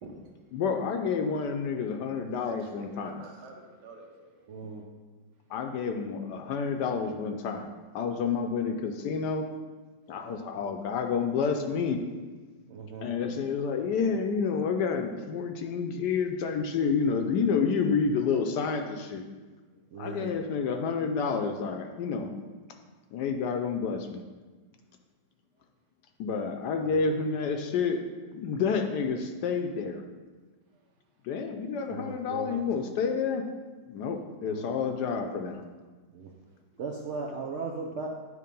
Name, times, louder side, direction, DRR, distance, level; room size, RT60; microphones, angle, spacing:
voice 1, 0.5-3.2 5.5-9.4 10.1-12.0 13.0-19.3 20.0-22.3 23.1-24.2 26.2-28.0 28.3-30.0 31.2-33.4 33.9-35.6, left 5 dB, 70° left, 5 dB, 1.1 m, -29 dB
voice 2, 2.3-4.3, right 3 dB, 70° right, 2 dB, 1.5 m, -47 dB
voice 3, 4.5-4.8 12.7-13.1 19.9-20.4 26.8-27.2 31.9-32.8 34.4-34.7 35.1-35.2 36.1-36.3 36.8-38.1, right 4 dB, 85° right, -2 dB, 0.6 m, -38 dB
9.4 x 3.2 x 5.2 m, 1.3 s
omnidirectional pair, 2.0 m